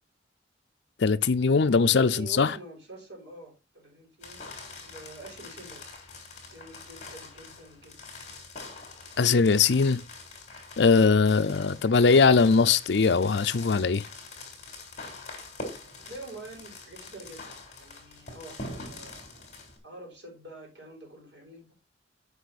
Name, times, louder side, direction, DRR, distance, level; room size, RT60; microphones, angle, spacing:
voice 1, 1.0-2.5 9.2-10.0 10.8-14.0, left 4 dB, 75° left, 0.5 m, -21 dB
voice 2, 1.8-4.4 4.8-5.8 6.5-8.0 11.3-11.5 16.0-19.2 19.8-21.7, right 2 dB, 75° right, 4.8 m, -46 dB
sound 1, 4.2-19.8, left 2 dB, 35° left, 3.4 m, -44 dB
8.2 x 5.6 x 4.2 m
head